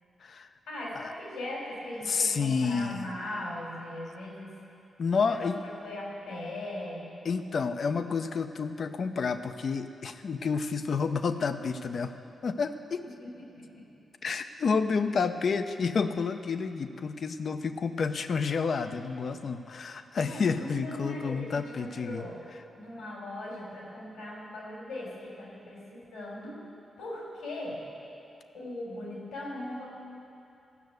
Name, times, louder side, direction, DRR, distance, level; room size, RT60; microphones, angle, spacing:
voice 1, 0.7-4.5 5.2-5.5 5.8-7.1 13.0-13.9 20.2-22.4 22.8-26.6 27.0-27.8 28.5-29.9, left 1 dB, 90° left, -4 dB, 3.8 m, -39 dB
voice 2, 2.1-3.1 5.0-5.6 7.2-12.1 12.4-13.0 14.2-22.3, left 5 dB, 60° left, 9 dB, 0.6 m, -30 dB
15.0 x 6.4 x 8.0 m, 2.7 s
supercardioid pair, 45°, 0 cm